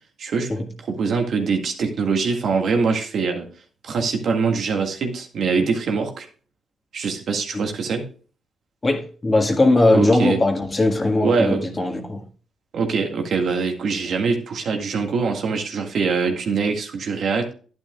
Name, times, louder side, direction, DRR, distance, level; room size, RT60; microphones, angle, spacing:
voice 1, 0.2-0.5 0.8-3.5 3.8-6.3 6.9-8.0 9.9-10.4 11.2-11.7 12.7-17.5, right 5 dB, 65° right, 1.8 m, -23 dB
voice 2, 8.8-12.2, left 2 dB, 25° left, 1.7 m, -19 dB
10.5 x 9.4 x 2.4 m
cardioid pair, 70°, 0 cm